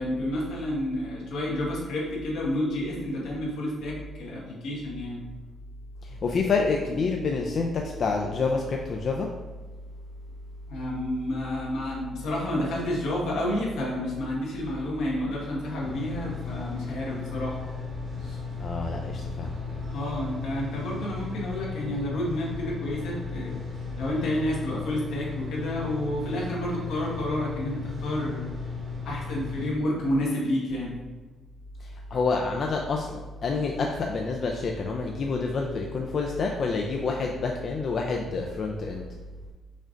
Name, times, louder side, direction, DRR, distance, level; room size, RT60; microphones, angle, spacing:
voice 1, 0.0-5.2 10.7-17.6 18.2-18.4 19.9-23.6 24.0-28.5 29.0-31.0, left 1 dB, 85° left, -3 dB, 1.3 m, -30 dB
voice 2, 6.0-9.3 18.6-19.6 31.8-39.1, left 4 dB, 55° left, 1 dB, 0.4 m, -28 dB
sound 1, 15.8-29.7, left 4 dB, 55° right, 1.3 m, -36 dB
5.2 x 2.5 x 3.8 m, 1.2 s
cardioid pair, 90°, 0 cm